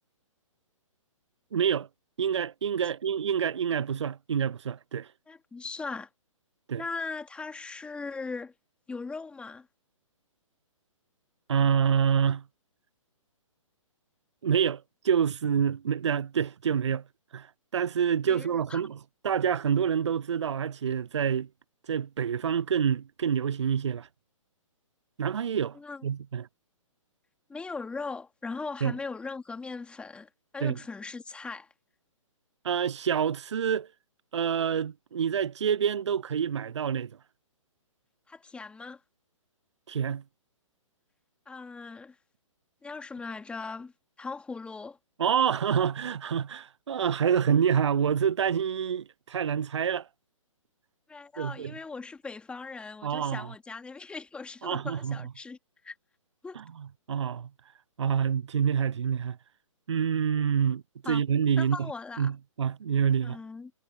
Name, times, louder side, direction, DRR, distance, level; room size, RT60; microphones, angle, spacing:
voice 1, 1.5-1.9 2.2-5.1 6.7-6.8 11.5-12.4 14.4-17.0 17.3-19.0 19.2-21.5 21.9-24.1 25.2-26.5 28.8-28.9 30.6-30.8 32.6-33.9 34.3-37.1 39.9-40.2 45.2-50.1 51.4-51.7 53.0-53.5 54.6-55.2 56.6-56.7 57.1-57.5 58.0-59.4 59.9-60.8 61.1-61.9 62.2-63.4, right 8 dB, 60° right, 0.6 m, -27 dB
voice 2, 5.3-6.1 6.8-8.5 8.9-9.7 18.2-18.8 25.7-26.0 27.5-31.7 38.3-39.0 41.5-42.2 42.8-43.9 44.2-45.0 51.1-55.6 55.8-55.9 56.4-56.6 61.0-61.2 61.6-62.3 63.2-63.7, left 4 dB, 5° left, 3.2 m, -39 dB
figure-of-eight pair, 125°, 17 cm